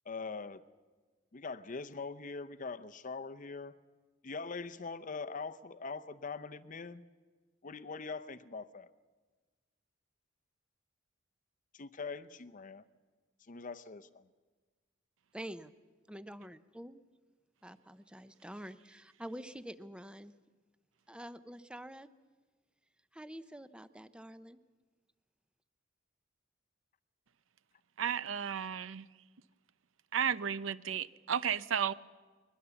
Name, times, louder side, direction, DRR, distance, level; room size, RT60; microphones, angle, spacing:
voice 1, 0.1-0.6 1.3-3.7 4.2-7.0 7.6-8.9 11.7-12.8 13.5-14.2, left 4 dB, 40° left, 0.7 m, -42 dB
voice 2, 15.3-15.7 16.1-17.0 17.6-20.3 21.1-22.1 23.1-24.6, equal, 5° right, 0.6 m, -47 dB
voice 3, 28.0-29.1 30.1-31.9, right 8 dB, 80° right, 0.6 m, -33 dB
21.5 x 21.0 x 7.0 m
head